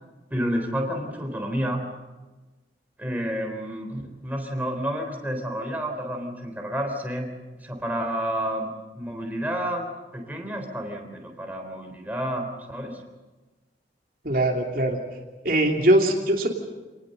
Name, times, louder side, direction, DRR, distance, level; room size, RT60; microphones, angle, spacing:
voice 1, 0.3-1.8 3.0-7.3 7.6-13.0, equal, 10° right, 2 dB, 3.8 m, -30 dB
voice 2, 14.2-15.0 15.4-16.5, right 1 dB, 50° right, 1 dB, 3.0 m, -21 dB
28.0 x 19.5 x 6.7 m, 1.2 s
head